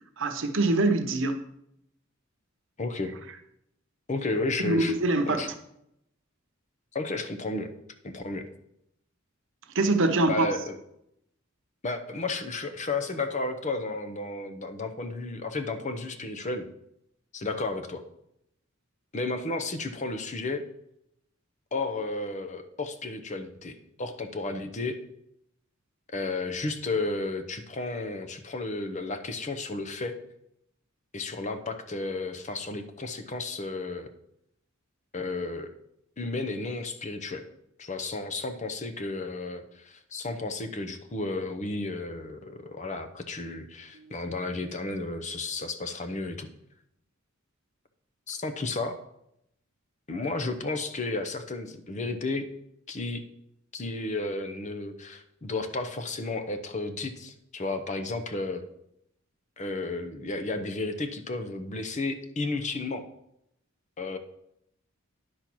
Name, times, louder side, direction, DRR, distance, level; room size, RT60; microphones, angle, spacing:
voice 1, 0.2-1.4 4.6-5.4 9.7-10.5 44.0-44.1, right 2 dB, 65° right, 7 dB, 0.9 m, -24 dB
voice 2, 2.8-3.2 4.1-4.9 5.3-5.5 6.9-7.7 8.0-8.4 10.3-10.8 11.8-16.7 17.3-18.0 19.1-20.7 21.7-25.0 26.1-30.1 31.1-34.1 35.1-35.7 36.2-37.4 37.8-46.5 48.3-49.0 50.1-52.5 52.9-53.2 53.7-58.6 59.6-63.1 64.0-64.2, left 3 dB, 35° left, 7 dB, 0.8 m, -33 dB
10.0 x 4.3 x 6.1 m, 0.77 s
head